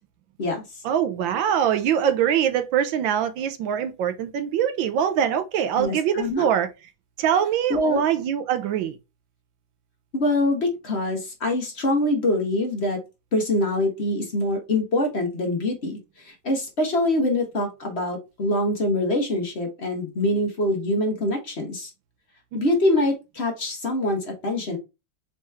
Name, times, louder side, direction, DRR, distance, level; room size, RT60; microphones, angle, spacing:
voice 1, 0.8-6.7 7.2-9.0 22.6-22.7, right 9 dB, 75° right, 1.3 m, -23 dB
voice 2, 5.8-6.4 7.7-8.0 10.1-13.0 13.3-21.9 22.5-24.8, left 1 dB, 45° left, 1.0 m, -24 dB
4.3 x 3.0 x 3.4 m
omnidirectional pair, 2.3 m